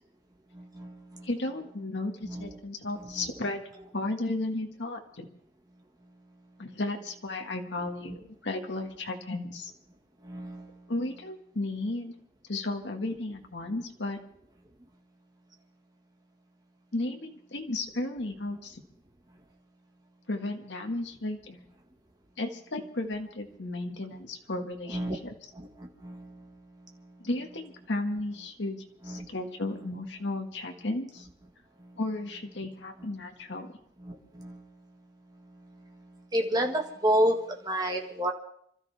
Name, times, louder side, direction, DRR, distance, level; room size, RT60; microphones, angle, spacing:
voice 1, 0.5-1.3 2.3-2.5 3.2-3.3 7.8-7.9 10.2-10.8 24.9-25.2 25.6-26.5 29.1-29.3 31.8-31.9 34.0-34.6 36.3-37.4 37.7-38.3, equal, 20° right, 2 dB, 1.7 m, -30 dB
voice 2, 1.2-3.6 3.9-5.3 6.6-9.7 10.9-12.1 12.5-14.2 16.9-18.8 20.3-21.7 22.4-25.3 27.2-31.3 32.0-33.7, left 2 dB, 70° left, 3 dB, 1.7 m, -34 dB
26.5 x 13.5 x 3.5 m, 0.69 s
head